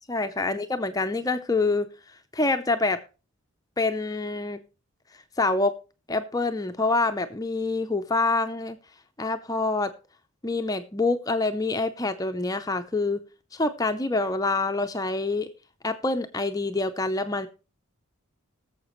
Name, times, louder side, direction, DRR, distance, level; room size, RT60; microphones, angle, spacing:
voice 1, 0.1-3.0 3.8-4.6 5.4-5.8 6.1-8.8 9.2-9.9 10.4-13.2 13.5-15.5 15.8-17.5, left 3 dB, 15° left, 8 dB, 0.5 m, -26 dB
19.5 x 7.2 x 3.1 m, 0.33 s
head